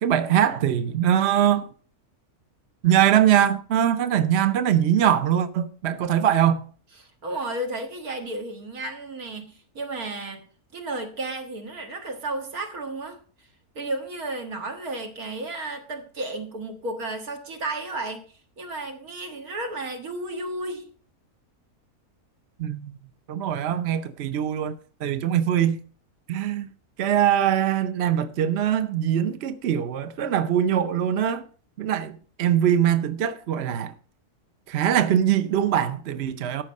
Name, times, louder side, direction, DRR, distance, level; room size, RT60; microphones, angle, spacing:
voice 1, 0.0-1.7 2.8-6.6 22.6-22.9 23.3-24.7 25.0-25.8 26.3-26.7 27.0-31.4 31.8-33.9 34.7-36.6, right 10 dB, 55° right, 0.8 m, -22 dB
voice 2, 7.0-10.5 10.7-13.2 13.8-18.3 18.6-20.9, right 2 dB, 75° right, 2.1 m, -33 dB
13.5 x 5.7 x 5.3 m
omnidirectional pair, 1.6 m